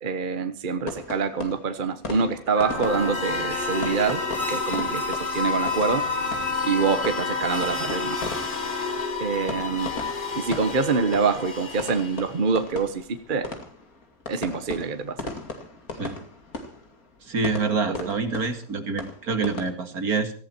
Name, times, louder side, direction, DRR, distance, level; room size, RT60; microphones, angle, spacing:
voice 1, 0.0-4.2 4.5-6.0 6.6-8.2 9.2-9.9 10.3-13.5 14.3-15.2 17.9-18.1, right 5 dB, 35° right, 9 dB, 1.2 m, -25 dB
sound 1, 0.9-19.7, left 3 dB, 75° left, 2.9 m, -38 dB
Trumpet, 2.5-9.2, left 1 dB, 20° left, 3.3 m, -34 dB
sound 2, 2.6-12.6, left 4 dB, 35° left, 1.7 m, -30 dB
voice 2, 15.9-16.2 17.2-20.3, right 4 dB, 85° right, 7 dB, 2.6 m, -27 dB
18.0 x 15.0 x 4.4 m, 0.43 s
omnidirectional pair, 1.5 m